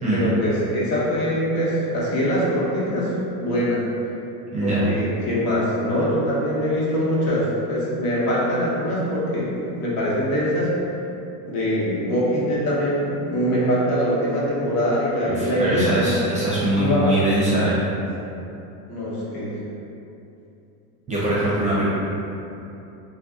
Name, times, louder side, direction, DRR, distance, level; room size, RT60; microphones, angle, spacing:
voice 1, 0.1-3.1 3.4-3.8 4.6-10.7 11.5-16.2 16.7-17.2 18.9-19.5, equal, 70° left, -7 dB, 1.2 m, -23 dB
voice 2, 15.2-17.8 21.1-21.9, right 1 dB, 15° right, -8 dB, 0.5 m, -22 dB
2.5 x 2.2 x 3.6 m, 2.8 s
supercardioid pair, 130°, 47 cm